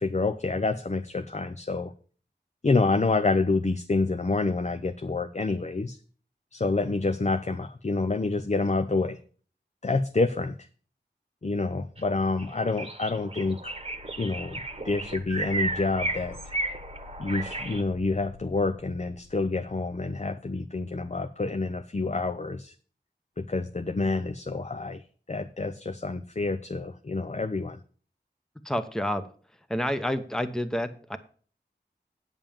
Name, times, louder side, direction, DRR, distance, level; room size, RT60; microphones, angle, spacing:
voice 1, 0.0-1.9 2.6-6.0 6.5-9.2 9.8-10.7 11.4-13.7 14.2-16.4 17.2-22.7 23.4-25.0 25.3-27.8, left 3 dB, 40° left, 9 dB, 0.6 m, -28 dB
sound 1, 12.0-12.1 12.4-17.8, right 2 dB, 30° right, 1.2 m, -34 dB
sound 2, 13.7-20.2, left 4 dB, 75° left, 0.6 m, -49 dB
voice 2, 28.6-29.3 29.7-31.2, equal, 5° left, 9 dB, 0.9 m, -29 dB
9.1 x 5.5 x 7.0 m, 0.43 s
wide cardioid pair, 40°, 19 cm